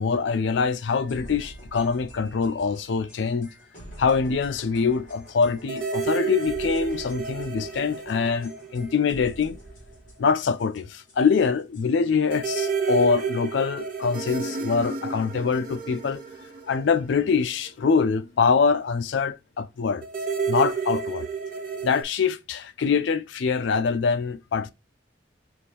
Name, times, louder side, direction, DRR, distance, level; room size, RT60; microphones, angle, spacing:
voice 1, 0.0-3.5 4.0-9.6 10.2-16.2 16.7-20.0 20.5-21.3 21.8-24.7, left 5 dB, 65° left, 0.4 m, -24 dB
sound 1, 0.8-12.2, equal, 40° left, 1.7 m, -46 dB
sound 2, 5.7-9.4 9.7-9.8 12.3-17.7 20.0-22.0, right 5 dB, 45° right, 0.8 m, -31 dB
5.8 x 2.5 x 3.4 m
head